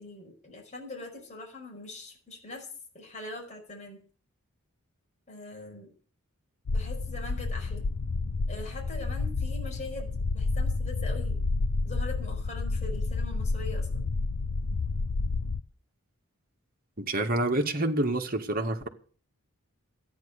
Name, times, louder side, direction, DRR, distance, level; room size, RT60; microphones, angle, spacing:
voice 1, 0.0-2.7 2.9-4.0 5.3-5.9 6.7-7.8 8.5-11.4 11.8-14.0, left 2 dB, 30° left, 5.2 m, -42 dB
sound 1, 6.7-15.6, left 3 dB, 75° left, 0.6 m, -30 dB
voice 2, 17.0-18.9, right 2 dB, 40° right, 1.9 m, -27 dB
13.5 x 10.0 x 6.6 m
head